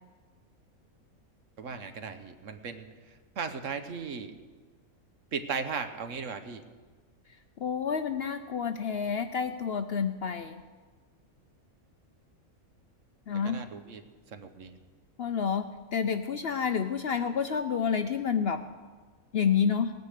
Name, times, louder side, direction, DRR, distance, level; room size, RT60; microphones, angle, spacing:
voice 1, 1.6-4.4 5.3-6.6 13.4-14.0 14.3-14.8, right 5 dB, 65° right, 9 dB, 1.3 m, -37 dB
voice 2, 7.6-10.6 13.3-13.6 15.2-18.6 19.3-19.9, left 6 dB, 60° left, 9 dB, 0.7 m, -29 dB
18.5 x 9.3 x 6.5 m, 1.4 s
omnidirectional pair, 1.5 m